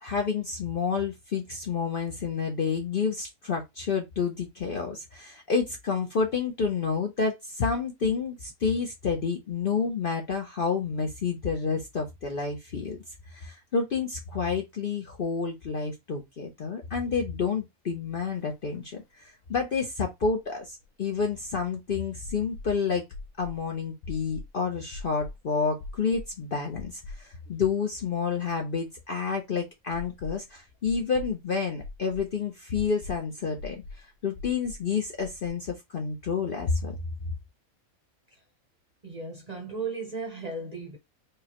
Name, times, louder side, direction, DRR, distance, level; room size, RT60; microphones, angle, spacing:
voice 1, 0.0-13.0 13.3-23.0 23.4-37.0, left 5 dB, 50° left, 0.7 m, -29 dB
sound 1, 18.4-18.5 18.7-18.8 20.4-21.6 22.2-22.7 23.1-23.6 24.0-24.5 24.9-25.4 25.8-26.3 26.7-27.5 27.8-27.9 29.9-30.5 30.8-31.3 31.8-32.3 32.7-33.2 33.6-34.0 34.3-34.8 35.2-35.5, left 3 dB, 75° left, 1.1 m, -41 dB
voice 2, 39.0-41.0, right 4 dB, 35° right, 0.8 m, -36 dB
4.8 x 2.2 x 2.9 m
omnidirectional pair, 1.5 m